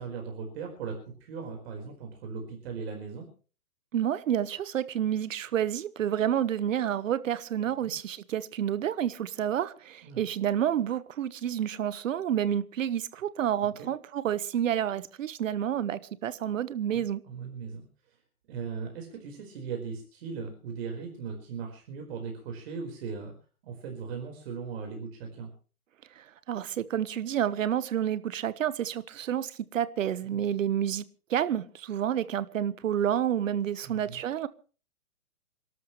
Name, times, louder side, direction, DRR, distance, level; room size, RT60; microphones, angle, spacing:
voice 1, 0.0-3.3 7.8-7.9 10.0-10.2 13.8-13.9 16.9-18.2 18.5-23.3 23.6-25.5 30.2-30.4 33.8-34.2, right 5 dB, 45° right, 3 dB, 4.6 m, -38 dB
voice 2, 3.9-17.2 26.2-31.0 31.3-34.5, right 10 dB, 60° right, 16 dB, 1.3 m, -29 dB
28.0 x 12.5 x 3.2 m, 0.38 s
hypercardioid pair, 150°, 44 cm